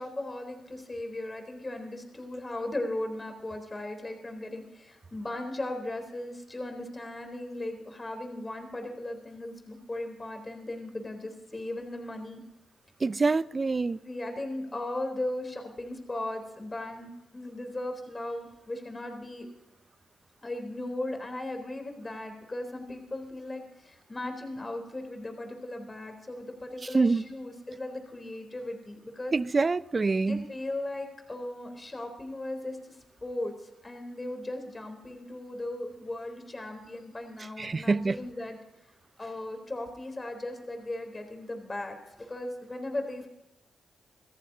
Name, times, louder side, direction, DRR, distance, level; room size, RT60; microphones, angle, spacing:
voice 1, 0.0-12.4 14.0-19.5 20.4-29.3 30.2-38.6 39.2-43.3, left 1 dB, 30° left, 3.7 m, -37 dB
voice 2, 13.0-14.0 26.9-27.2 29.3-30.4 37.6-38.2, right 3 dB, 40° right, 0.6 m, -25 dB
25.0 x 14.5 x 2.8 m
supercardioid pair, 45°, 0 cm